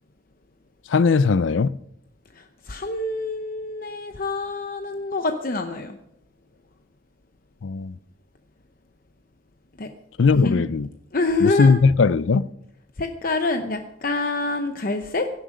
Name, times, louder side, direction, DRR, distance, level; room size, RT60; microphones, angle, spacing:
voice 1, 0.9-1.8 7.6-8.0 10.2-10.9 11.4-12.5, left 4 dB, 70° left, 0.5 m, -18 dB
voice 2, 2.3-6.0 9.8-9.9 10.3-10.7 11.1-11.8 13.0-15.3, left 2 dB, 45° left, 0.8 m, -26 dB
17.0 x 11.5 x 5.1 m
head